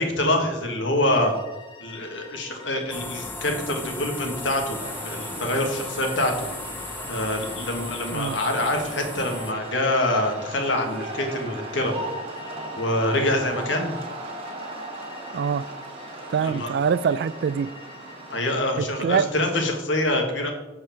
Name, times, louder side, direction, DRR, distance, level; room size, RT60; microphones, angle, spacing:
voice 1, 0.0-1.3 1.8-4.8 5.0-6.5 7.1-11.9 12.8-13.9 16.1-16.7 18.3-20.5, left 1 dB, 75° left, 1.5 m, -25 dB
sound 1, 1.0-19.7, left 2 dB, 25° left, 0.9 m, -47 dB
sound 2, 2.9-9.5, left 2 dB, 10° left, 0.5 m, -36 dB
sound 3, 4.7-18.6, right 1 dB, 30° right, 1.5 m, -38 dB
voice 2, 15.3-15.6 16.3-17.7 18.8-19.3, right 6 dB, 60° right, 0.3 m, -24 dB
7.5 x 4.8 x 5.8 m
head